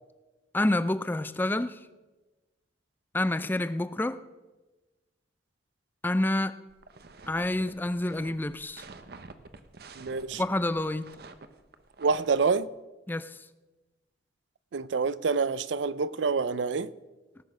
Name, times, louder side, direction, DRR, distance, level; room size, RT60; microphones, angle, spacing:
voice 1, 0.5-1.8 3.1-4.2 6.0-6.6 7.3-8.8 10.4-11.2 13.1-13.4, left 1 dB, 10° left, 0.3 m, -28 dB
sound 1, 6.7-12.5, right 3 dB, 55° right, 0.8 m, -49 dB
voice 2, 10.0-10.4 12.0-12.7 14.7-16.9, right 4 dB, 80° right, 0.5 m, -27 dB
18.5 x 6.4 x 6.0 m
head